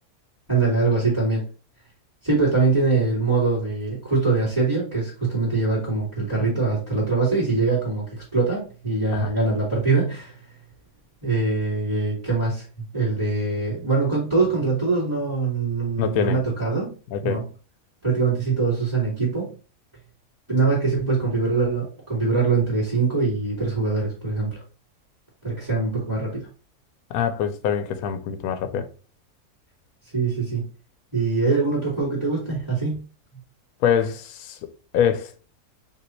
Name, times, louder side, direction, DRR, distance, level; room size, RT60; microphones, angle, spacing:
voice 1, 0.5-1.4 2.2-10.4 11.2-16.9 17.2-17.5 18.0-19.5 20.5-24.6 25.4-26.5 30.1-30.6 31.1-33.0, right 3 dB, 10° right, 2.2 m, -23 dB
voice 2, 16.0-16.4 17.1-17.4 27.1-28.9 33.8-35.4, left 8 dB, 70° left, 1.0 m, -24 dB
5.2 x 2.8 x 3.1 m
omnidirectional pair, 1.7 m